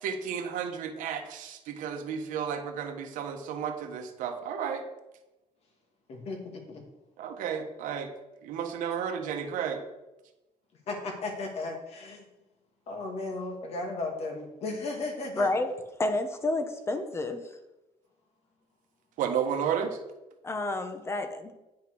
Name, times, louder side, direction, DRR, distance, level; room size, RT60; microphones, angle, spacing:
voice 1, 0.0-4.8 7.2-8.1 8.4-9.8 19.2-20.0, right 7 dB, 85° right, 5 dB, 1.3 m, -32 dB
voice 2, 6.1-6.8 10.9-12.2 12.9-15.5, left 2 dB, 50° left, 3 dB, 2.2 m, -35 dB
voice 3, 15.4-15.7 16.0-17.5 20.4-21.5, left 2 dB, 20° left, 8 dB, 1.0 m, -29 dB
9.1 x 5.8 x 6.1 m, 1.0 s
cardioid pair, 150°, 13 cm